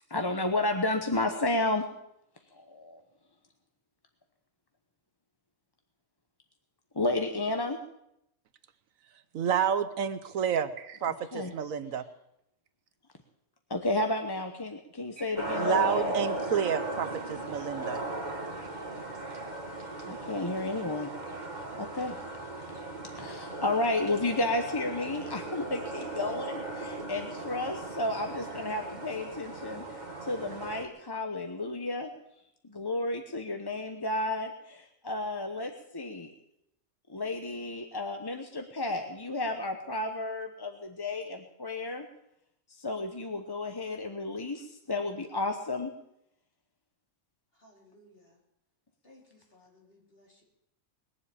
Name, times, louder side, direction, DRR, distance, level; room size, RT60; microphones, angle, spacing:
voice 1, 0.1-1.9 2.5-3.0 6.9-7.8 11.3-11.5 13.7-16.1 20.0-21.1 21.7-22.2 23.2-32.1 32.6-36.3 37.1-42.1 42.7-45.9, left 2 dB, 20° left, 5 dB, 0.8 m, -32 dB
voice 2, 9.3-12.0 15.2-15.3 15.5-18.0, right 8 dB, 70° right, 12 dB, 1.2 m, -30 dB
sound 1, 15.4-30.8, right 2 dB, 30° right, 2.1 m, -37 dB
voice 3, 47.5-48.4 49.0-50.4, left 1 dB, 40° left, -2 dB, 4.1 m, -60 dB
21.0 x 7.6 x 8.4 m, 0.81 s
omnidirectional pair, 1.5 m